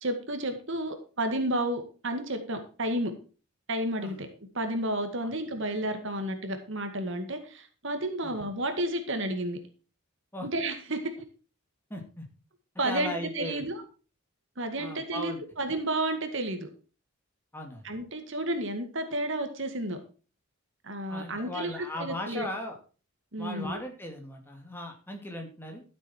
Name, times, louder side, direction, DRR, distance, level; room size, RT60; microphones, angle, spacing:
voice 1, 0.0-3.1 3.7-4.3 4.5-9.6 10.4-11.1 12.8-13.8 14.6-16.7 17.8-20.0 20.8-22.5 23.3-23.8, right 1 dB, 60° right, 6 dB, 2.0 m, -31 dB
voice 2, 11.9-12.3 12.7-13.6 14.8-15.4 17.5-17.9 21.1-22.8 23.4-25.8, left 1 dB, 10° left, 3 dB, 2.5 m, -37 dB
13.0 x 7.6 x 4.6 m, 0.37 s
head